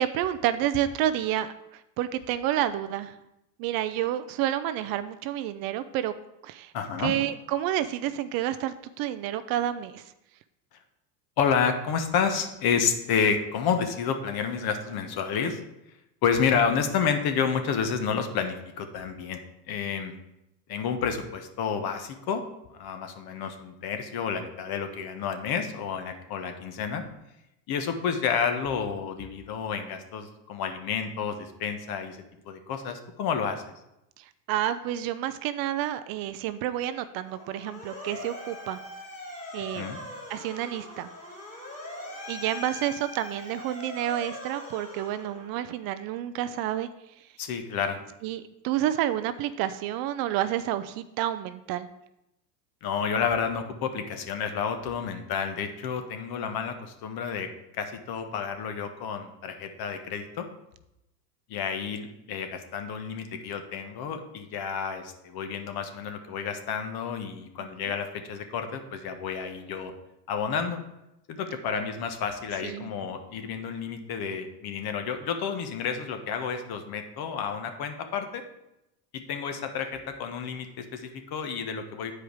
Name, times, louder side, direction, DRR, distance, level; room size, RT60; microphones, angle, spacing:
voice 1, 0.0-3.1 3.6-6.1 6.4-6.7 7.0-10.1 34.2-38.8 39.5-39.9 40.3-41.1 42.3-46.9 47.2-47.3 48.2-51.9 67.6-67.7 72.6-72.9, right 12 dB, 45° right, 12 dB, 0.5 m, -29 dB
voice 2, 6.7-7.1 11.4-15.6 16.2-20.1 20.7-22.4 22.7-27.0 27.7-33.6 39.7-40.0 47.4-48.0 52.8-57.5 57.7-60.5 61.5-69.9 70.3-70.8 71.3-78.4 79.1-82.1, left 6 dB, 45° left, 7 dB, 1.2 m, -30 dB
Motor vehicle (road) / Siren, 37.2-45.8, left 1 dB, 15° left, 2.4 m, -41 dB
8.7 x 4.9 x 4.7 m, 0.88 s
hypercardioid pair, 90°, 50 cm